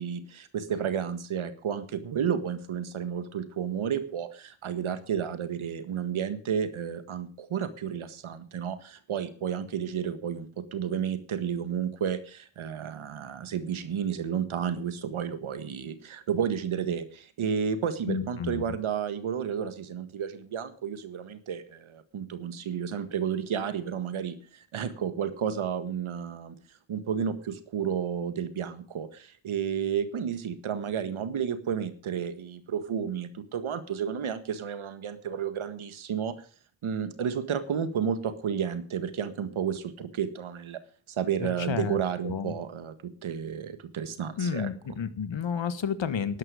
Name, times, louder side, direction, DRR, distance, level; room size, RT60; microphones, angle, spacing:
voice 1, 0.0-26.5 26.9-36.5 36.8-40.8 41.1-44.7, right 8 dB, 80° right, 11 dB, 1.7 m, -32 dB
voice 2, 18.1-18.6 41.4-42.0 42.2-42.5 44.4-46.4, left 7 dB, 65° left, 13 dB, 1.6 m, -31 dB
12.5 x 11.5 x 5.0 m, 0.41 s
cardioid pair, 45°, 47 cm